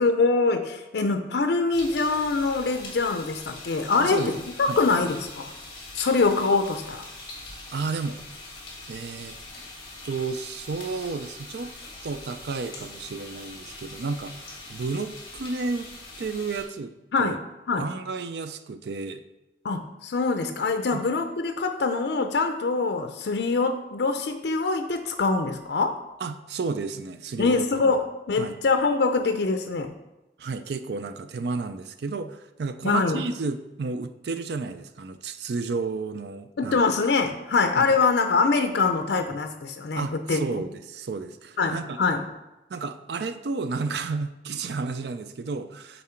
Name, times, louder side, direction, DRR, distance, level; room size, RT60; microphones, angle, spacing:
voice 1, 0.0-4.3 4.6-5.5 5.9-7.1 17.1-17.4 17.7-17.9 19.6-26.0 27.4-29.9 32.8-33.2 36.6-40.4 41.6-42.3, left 4 dB, 75° left, 7 dB, 0.5 m, -24 dB
sound 1, 1.7-16.6, left 2 dB, 25° left, 1.6 m, -42 dB
voice 2, 4.0-4.8 7.7-8.2 8.9-9.3 10.0-11.7 12.0-15.9 16.2-16.9 17.2-17.4 17.8-19.2 20.9-21.0 26.2-27.9 28.4-28.6 30.4-36.9 37.8-38.0 39.9-42.0 42.7-46.0, right 4 dB, 75° right, 11 dB, 0.4 m, -32 dB
7.4 x 4.1 x 4.4 m, 1.0 s
head